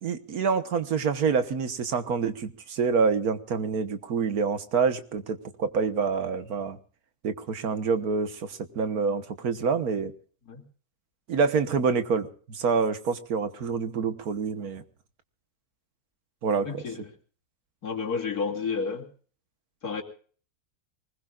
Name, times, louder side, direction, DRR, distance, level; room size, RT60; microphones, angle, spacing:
voice 1, 0.0-6.8 7.2-10.1 11.3-14.8 16.4-16.8, right 5 dB, 75° right, 10 dB, 1.7 m, -27 dB
voice 2, 16.6-17.0 17.8-19.1 19.8-20.0, left 5 dB, 80° left, 1 dB, 3.1 m, -30 dB
24.0 x 20.5 x 2.5 m, 0.44 s
omnidirectional pair, 1.6 m